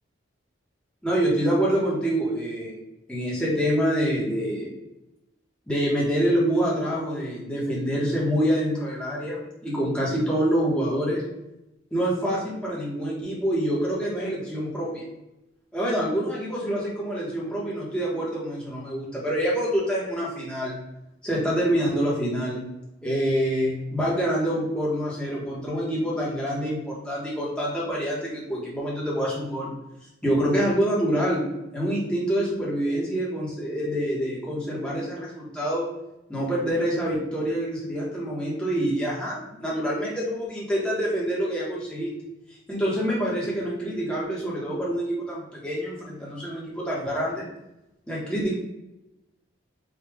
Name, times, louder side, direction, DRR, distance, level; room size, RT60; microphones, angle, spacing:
voice 1, 1.0-2.7 3.1-4.7 5.7-11.2 11.9-15.0 15.7-20.8 21.2-22.6 23.0-29.7 30.2-31.4 31.7-35.9 36.3-42.1 42.7-47.4 48.1-48.5, equal, 5° left, -6 dB, 1.3 m, -26 dB
5.0 x 2.6 x 3.5 m, 0.91 s
head